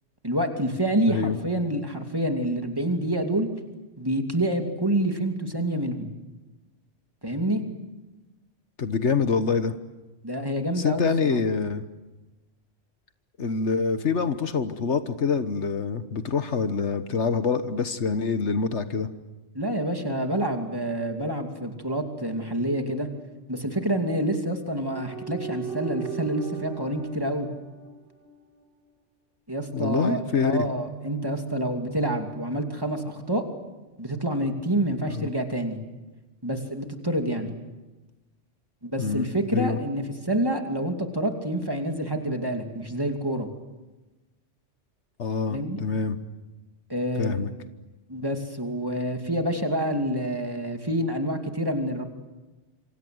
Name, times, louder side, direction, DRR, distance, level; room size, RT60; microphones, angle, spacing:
voice 1, 0.2-3.5 4.0-6.1 7.2-7.6 10.2-11.4 19.5-23.1 23.5-27.5 29.5-33.4 34.0-35.8 36.4-37.5 38.8-43.5 45.4-45.8 46.9-47.4 48.1-52.0, right 1 dB, 20° right, 4 dB, 2.7 m, -27 dB
voice 2, 8.8-9.7 10.8-11.8 13.4-19.1 29.7-30.7 35.1-35.3 39.0-39.3 39.5-39.8 45.2-46.2 47.2-47.5, left 5 dB, 70° left, 10 dB, 1.5 m, -25 dB
sound 1, 24.9-28.6 30.0-33.8 34.6-35.8, right 6 dB, 50° right, 2.8 m, -39 dB
27.5 x 25.5 x 7.9 m, 1.1 s
omnidirectional pair, 1.2 m